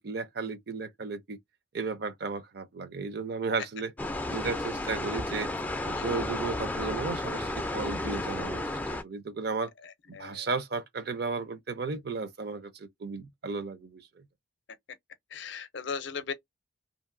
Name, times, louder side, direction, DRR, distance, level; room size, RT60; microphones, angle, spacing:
voice 1, 0.0-1.4 1.7-3.9 4.3-5.5 5.9-9.7 10.1-14.2, right 4 dB, 50° right, 0.5 m, -34 dB
sound 1, 4.0-9.0, left 2 dB, 10° left, 0.3 m, -33 dB
voice 2, 10.1-10.5 15.3-16.3, left 6 dB, 60° left, 0.5 m, -37 dB
2.8 x 2.5 x 2.5 m
head